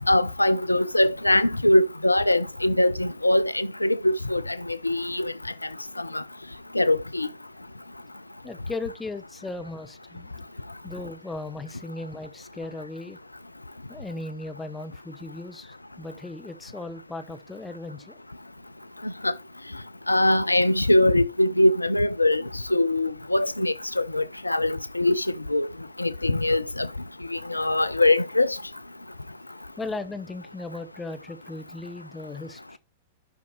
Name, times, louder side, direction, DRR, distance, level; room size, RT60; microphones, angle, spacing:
voice 1, 0.1-5.3 6.0-6.2 6.7-7.3 19.0-19.3 20.1-22.4 22.7-25.7 26.0-26.9 27.3-28.6, left 1 dB, 85° left, 0.4 m, -22 dB
voice 2, 8.4-10.5 10.8-13.2 13.9-18.2 29.8-32.8, left 2 dB, 10° left, 1.1 m, -37 dB
12.0 x 5.7 x 3.2 m
figure-of-eight pair, 100°, 0 cm